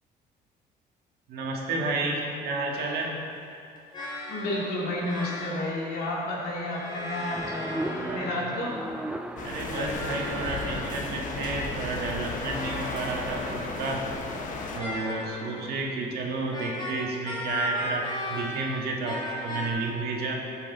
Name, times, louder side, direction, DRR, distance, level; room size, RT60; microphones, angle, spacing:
voice 1, 1.3-3.2 8.0-8.7 9.4-14.1 14.7-20.3, right 2 dB, 70° right, 0 dB, 1.6 m, -31 dB
sound 1, 2.7-3.1 3.9-5.8 6.7-8.7 9.6-11.3 12.3-14.1 14.7-15.7 16.5-18.8 19.0-19.7, equal, 25° left, 1.9 m, -37 dB
voice 2, 4.3-8.8, left 1 dB, 70° left, -4 dB, 2.5 m, -31 dB
sound 2, 7.3-13.3, right 1 dB, 5° right, 0.3 m, -39 dB
sound 3, 9.4-14.8, left 3 dB, 50° left, 1.1 m, -34 dB
12.0 x 6.7 x 4.0 m, 2.6 s
cardioid pair, 110°, 17 cm